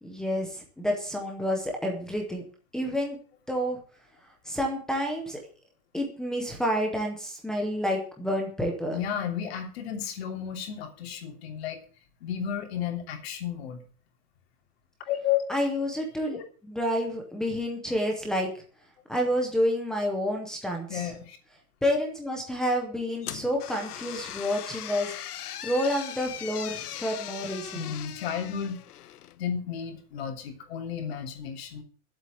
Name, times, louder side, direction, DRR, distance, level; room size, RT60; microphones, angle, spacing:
voice 1, 0.0-2.4 2.7-3.2 3.5-3.8 4.4-5.4 5.9-9.0 15.5-16.4 16.6-18.6 19.1-21.1 21.8-27.9, equal, ahead, -1 dB, 0.6 m, -29 dB
voice 2, 8.9-11.8 12.2-13.8 15.1-15.4 16.3-16.4 20.9-21.4 27.7-28.8 29.4-31.8, left 9 dB, 45° left, 4 dB, 3.0 m, -32 dB
sound 1, 23.2-29.4, left 12 dB, 85° left, 1.1 m, -39 dB
11.5 x 7.8 x 7.8 m, 0.41 s
supercardioid pair, 175°, 45 cm